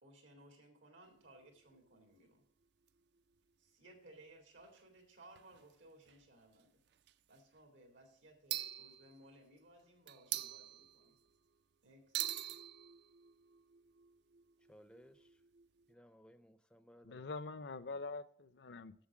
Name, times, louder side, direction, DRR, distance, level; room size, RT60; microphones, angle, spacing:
voice 1, 0.0-2.4 3.6-6.8 7.3-11.2 11.8-12.1, right 1 dB, 80° right, 2.3 m, -61 dB
sound 1, 1.0-2.1 2.9-3.0 3.2-3.3 4.7-4.8 5.3-5.7 6.1-6.2 6.9-7.4 8.5-9.6 10.1-11.4 12.1-15.9, right 13 dB, 60° right, 0.4 m, -45 dB
voice 2, 14.7-15.4 15.9-17.3, equal, 5° left, 0.4 m, -62 dB
voice 3, 17.0-19.1, left 3 dB, 60° left, 0.5 m, -45 dB
7.3 x 6.9 x 7.3 m
head